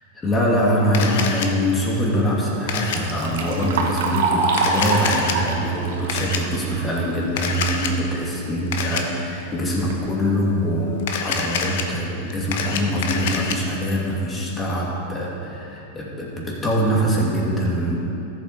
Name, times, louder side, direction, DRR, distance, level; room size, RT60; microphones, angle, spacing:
voice 1, 0.1-18.0, equal, 20° left, -3 dB, 2.5 m, -23 dB
Camera, 0.9-1.5 2.7-3.0 4.5-5.3 6.1-6.4 7.4-7.9 8.7-9.0 11.0-11.8 12.3-13.6, left 6 dB, 70° left, 1.0 m, -26 dB
Liquid, 2.7-7.8 8.2-8.3 9.2-9.3 9.7-10.0 10.7-10.8 11.3-11.4 11.8-12.0, right 3 dB, 75° right, 1.2 m, -26 dB
13.0 x 7.7 x 4.2 m, 2.9 s
hypercardioid pair, 110°, 0 cm